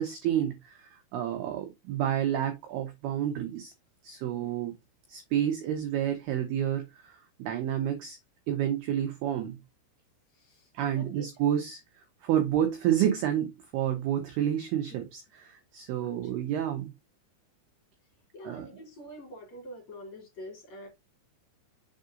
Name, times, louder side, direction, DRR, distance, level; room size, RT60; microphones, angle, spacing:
voice 1, 0.0-3.7 4.0-4.7 5.1-8.2 8.5-9.6 10.7-11.8 12.2-16.9 18.4-18.7, right 10 dB, 85° right, 2.3 m, -29 dB
voice 2, 10.3-11.3 16.0-16.1 18.3-20.9, equal, 40° left, 3.0 m, -46 dB
7.1 x 3.8 x 3.8 m
omnidirectional pair, 5.8 m